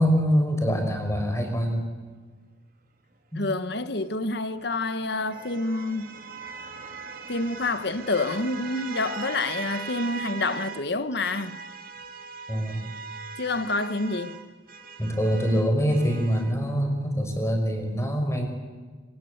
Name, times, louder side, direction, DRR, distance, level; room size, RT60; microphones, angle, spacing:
voice 1, 0.0-1.9 3.3-3.4 12.5-12.8 15.0-18.5, equal, 15° left, 5.5 m, -24 dB
voice 2, 3.4-6.1 7.3-11.6 13.4-14.4, left 2 dB, 60° left, 1.3 m, -28 dB
sound 1, 4.2-10.9 11.2-16.5, right 4 dB, 45° right, 2.9 m, -40 dB
26.5 x 26.5 x 8.1 m
head